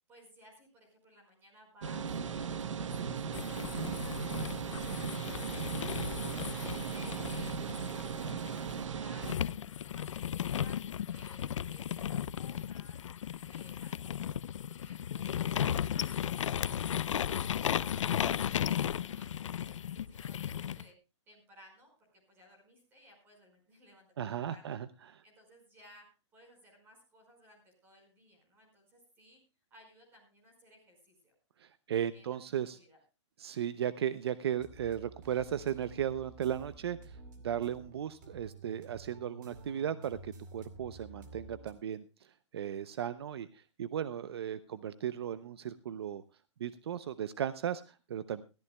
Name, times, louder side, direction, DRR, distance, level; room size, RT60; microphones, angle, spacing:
voice 1, 0.1-8.5 8.8-10.8 11.1-13.0 13.5-14.4 14.8-18.8 19.1-20.9 21.3-26.1 26.3-29.4 29.7-31.3 32.1-33.0, equal, 15° right, 1 dB, 5.1 m, -60 dB
sound 1, 1.8-9.3, right 6 dB, 85° right, 1.1 m, -37 dB
sound 2, 3.3-8.7 9.2-20.8, left 9 dB, 90° left, 0.5 m, -35 dB
voice 2, 24.2-25.2 31.6-32.8 33.4-37.2 37.4-46.2 46.6-48.4, right 9 dB, 60° right, 14 dB, 0.6 m, -36 dB
sound 3, 34.6-41.7, right 3 dB, 40° right, 2.2 m, -51 dB
21.0 x 14.0 x 2.3 m, 0.31 s
hypercardioid pair, 175°, 15 cm